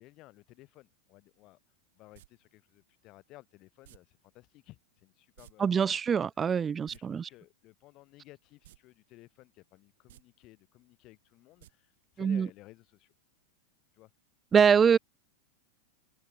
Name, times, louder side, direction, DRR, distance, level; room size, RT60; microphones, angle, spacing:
voice 1, 0.0-1.6 1.9-6.0 6.9-13.1 13.9-14.1 14.7-14.9, left 19 dB, 45° left, 8.0 m, -56 dB
sound 1, 2.1-2.3 3.8-4.0 5.4-5.5 5.8-5.9 6.7-7.0 8.6-8.8 9.2-9.3 10.0-10.2 11.6-11.7 12.0-12.1, right 15 dB, 70° right, 1.5 m, -55 dB
voice 2, 5.6-7.3 12.2-12.5 14.5-15.0, right 7 dB, 20° right, 0.5 m, -24 dB
hypercardioid pair, 125°, 0 cm